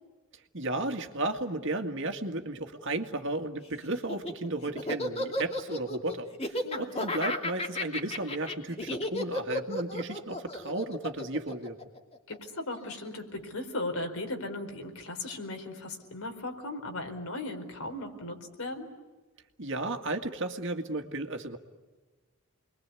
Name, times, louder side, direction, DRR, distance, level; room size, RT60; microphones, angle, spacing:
voice 1, 0.5-11.8 19.6-21.6, right 2 dB, 60° right, 5 dB, 2.1 m, -34 dB
Laughter, 3.9-12.4, left 1 dB, 30° left, 2.6 m, -33 dB
voice 2, 6.6-7.1 12.3-18.9, left 2 dB, 80° left, 5 dB, 4.5 m, -37 dB
30.0 x 22.5 x 8.4 m, 1.3 s
head